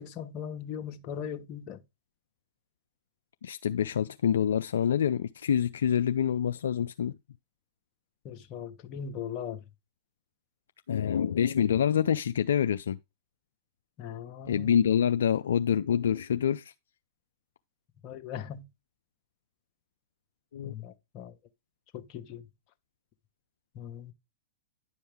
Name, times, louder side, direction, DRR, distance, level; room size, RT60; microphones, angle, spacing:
voice 1, 0.0-1.8 8.2-9.6 14.0-14.8 18.0-18.6 20.6-21.3 21.9-22.5 23.7-24.1, left 8 dB, 45° left, 1.2 m, -39 dB
voice 2, 3.4-7.1 10.9-13.0 14.5-16.7 20.5-20.7, left 8 dB, 75° left, 0.4 m, -26 dB
10.0 x 5.5 x 3.5 m
hypercardioid pair, 105°, 0 cm